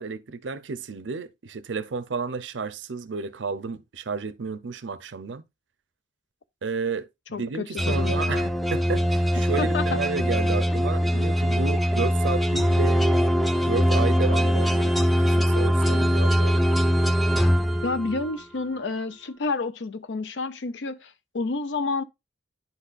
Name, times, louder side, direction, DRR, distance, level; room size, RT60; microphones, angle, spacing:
voice 1, 0.0-5.4 6.6-13.0 13.6-16.8, right 4 dB, 90° right, 0.6 m, -32 dB
voice 2, 7.3-8.5 9.6-10.0 17.8-22.0, left 3 dB, 75° left, 0.6 m, -30 dB
sound 1, 7.8-18.4, equal, ahead, 0.4 m, -22 dB
10.5 x 4.1 x 2.5 m
head